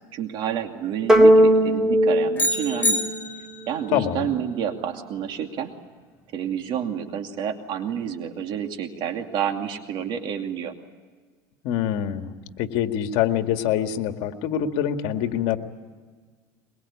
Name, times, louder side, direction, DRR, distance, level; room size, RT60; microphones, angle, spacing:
voice 1, 0.0-3.0 3.7-5.7 6.3-10.7, right 9 dB, 50° right, 5 dB, 2.5 m, -29 dB
sound 1, 1.1-3.7, right 1 dB, 5° right, 2.3 m, -18 dB
sound 2, 2.4-3.8, left 1 dB, 20° left, 3.1 m, -26 dB
voice 2, 3.9-4.3 11.6-12.3 12.6-15.6, left 10 dB, 65° left, 6 dB, 2.0 m, -25 dB
23.0 x 22.0 x 8.6 m, 1.5 s
supercardioid pair, 120°, 10 cm